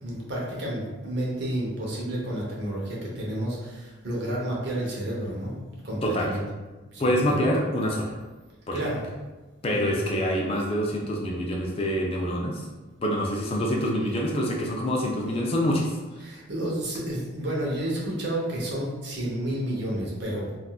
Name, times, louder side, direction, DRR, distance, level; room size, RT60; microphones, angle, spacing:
voice 1, 0.0-5.5 5.8-6.4 7.3-7.4 8.7-9.0 9.7-10.0 16.2-20.5, right 1 dB, 55° right, -4 dB, 0.8 m, -30 dB
voice 2, 6.0-6.4 7.0-8.2 8.7-8.9 9.6-12.7 13.0-16.0, equal, 30° left, -1 dB, 0.3 m, -26 dB
3.6 x 2.4 x 2.3 m, 1.2 s
head